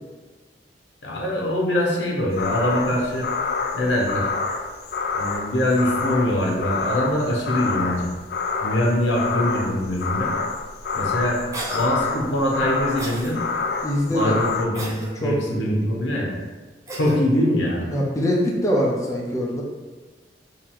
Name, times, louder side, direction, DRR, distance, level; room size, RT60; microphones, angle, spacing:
voice 1, 1.0-3.3 3.7-4.3 5.1-8.1 8.6-10.3 10.9-11.4 11.7-13.4 14.1-16.3 17.0-17.9, left 1 dB, 85° left, -2 dB, 1.0 m, -23 dB
sound 1, 2.4-14.7, left 4 dB, 60° left, 0.4 m, -27 dB
Cough, 11.5-11.9 13.0-13.3 14.7-15.1 16.9-17.2, right 1 dB, 20° right, 0.7 m, -32 dB
voice 2, 13.8-14.4 15.2-15.7 17.9-19.6, equal, 20° left, -3 dB, 0.6 m, -23 dB
4.7 x 2.7 x 3.7 m, 1.3 s
head